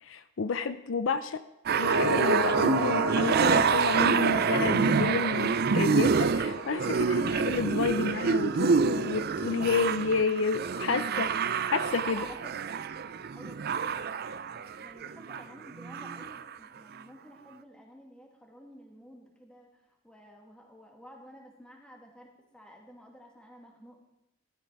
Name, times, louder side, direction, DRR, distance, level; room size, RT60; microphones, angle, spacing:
voice 1, 0.0-1.4 1.8-12.3, left 4 dB, 70° left, 12 dB, 0.5 m, -30 dB
sound 1, 1.7-15.4 15.7-16.5 17.0-17.1, right 5 dB, 50° right, 0.5 m, -27 dB
sound 2, 1.7-10.2 10.5-10.6, right 2 dB, 80° right, 1.1 m, -32 dB
voice 2, 12.1-12.5 13.3-22.3 22.5-23.9, equal, 5° left, 0 dB, 2.4 m, -51 dB
13.5 x 13.0 x 4.7 m, 0.88 s
head